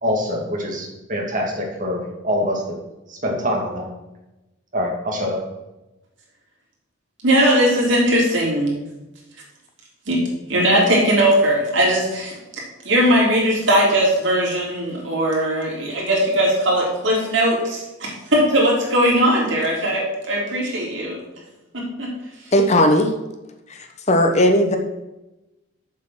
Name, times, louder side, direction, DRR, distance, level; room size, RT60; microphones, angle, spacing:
voice 1, 0.0-2.8 3.1-3.9 4.7-5.4, equal, 40° right, -1 dB, 2.4 m, -24 dB
voice 2, 7.2-8.7 10.1-10.2 10.5-12.4 12.8-21.2 21.7-22.1, right 1 dB, 70° right, -3 dB, 3.4 m, -19 dB
voice 3, 22.5-23.2 23.7-24.8, left 1 dB, 35° left, 5 dB, 1.0 m, -17 dB
7.5 x 6.7 x 6.3 m, 1.0 s
head